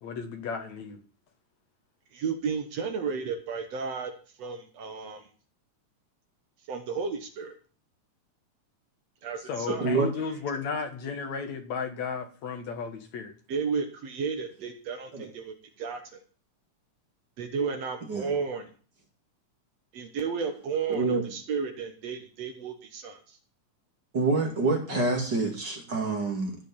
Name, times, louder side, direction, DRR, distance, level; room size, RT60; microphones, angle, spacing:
voice 1, 0.0-1.0 9.5-13.3 24.9-25.0, left 5 dB, 65° left, 6 dB, 2.8 m, -34 dB
voice 2, 2.1-4.1 4.4-5.3 6.7-7.5 9.2-9.9 13.5-16.2 17.4-18.7 19.9-23.4, right 5 dB, 60° right, 6 dB, 2.3 m, -33 dB
voice 3, 9.8-10.1 15.1-15.3 18.1-18.3 20.9-21.2 24.1-26.6, right 3 dB, 35° right, 2 dB, 2.7 m, -27 dB
15.0 x 5.2 x 8.5 m, 0.39 s
omnidirectional pair, 3.5 m